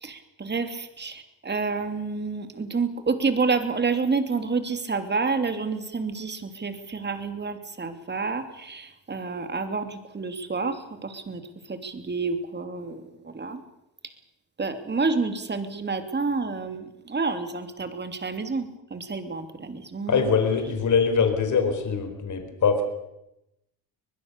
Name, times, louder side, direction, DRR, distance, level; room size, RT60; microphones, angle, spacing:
voice 1, 0.0-11.4 11.7-13.6 14.6-20.3, right 4 dB, 25° right, 8 dB, 3.0 m, -29 dB
voice 2, 20.1-22.8, left 5 dB, 45° left, 6 dB, 4.6 m, -23 dB
23.5 x 20.5 x 6.9 m, 0.87 s
cardioid pair, 105°, 40 cm